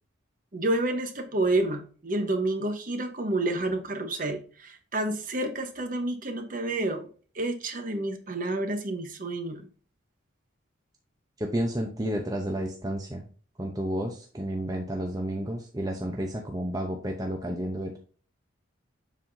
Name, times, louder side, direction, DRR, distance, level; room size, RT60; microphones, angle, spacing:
voice 1, 0.5-7.1 7.3-9.6, right 2 dB, 40° right, 6 dB, 1.1 m, -29 dB
voice 2, 11.4-13.3 13.6-18.0, right 1 dB, 20° right, 2 dB, 0.7 m, -31 dB
7.3 x 5.6 x 2.6 m, 0.40 s
head